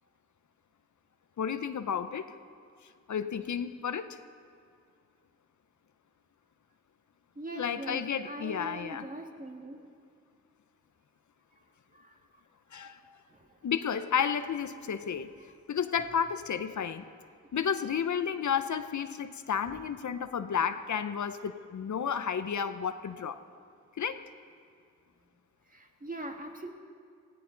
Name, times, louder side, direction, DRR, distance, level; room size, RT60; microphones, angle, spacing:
voice 1, 1.4-2.3 3.1-4.2 7.5-9.1 12.7-13.2 13.6-15.3 15.7-17.0 17.5-23.4 24.0-24.3, left 7 dB, 70° left, 11 dB, 0.7 m, -32 dB
voice 2, 7.4-9.8 11.9-12.2 13.3-13.6 19.7-19.8 25.7-26.7, right 2 dB, 25° right, 2 dB, 1.8 m, -42 dB
18.0 x 16.0 x 3.9 m, 2.3 s
cardioid pair, 55°, 30 cm